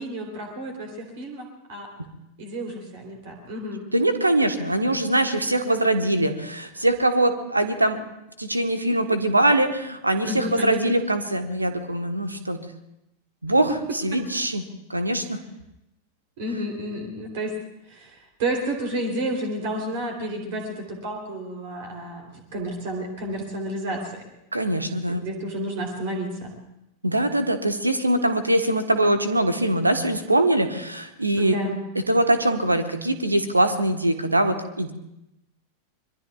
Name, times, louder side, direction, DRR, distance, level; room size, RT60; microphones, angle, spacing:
voice 1, 0.0-1.9 2.4-3.8 10.2-11.0 16.4-17.5 17.9-18.1 18.4-24.2 25.1-26.5 31.3-31.8, right 1 dB, 50° right, 2 dB, 3.4 m, -30 dB
voice 2, 3.9-8.0 8.4-12.6 13.4-14.6 14.9-15.4 24.5-25.3 27.0-31.6 32.1-34.9, right 1 dB, 85° right, 8 dB, 1.3 m, -22 dB
26.0 x 22.0 x 2.4 m, 0.87 s
figure-of-eight pair, 90°, 0 cm